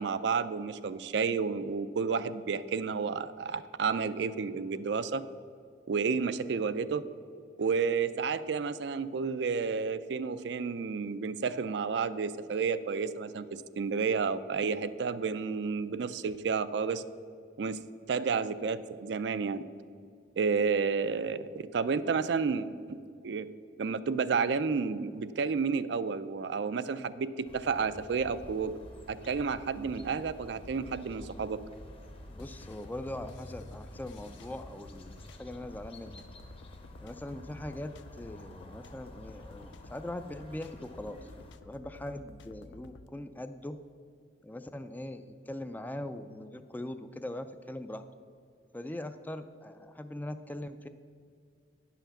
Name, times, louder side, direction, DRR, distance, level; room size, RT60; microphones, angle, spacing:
voice 1, 0.0-5.2 5.9-7.0 7.6-17.0 17.6-17.8 18.1-19.6 20.4-23.0 23.2-23.5 23.8-28.7 29.1-31.6, right 5 dB, 65° right, 13 dB, 0.4 m, -31 dB
Foley Village Roomtone Russia, 27.5-41.6, left 1 dB, 30° left, 0.8 m, -50 dB
voice 2, 32.3-36.2 37.0-37.9 38.2-41.3 41.7-43.8 44.4-48.0 48.7-50.9, left 1 dB, 10° left, 9 dB, 0.3 m, -41 dB
sound 1, 32.4-43.1, left 3 dB, 75° left, 0.4 m, -53 dB
9.8 x 5.7 x 7.1 m, 2.3 s
head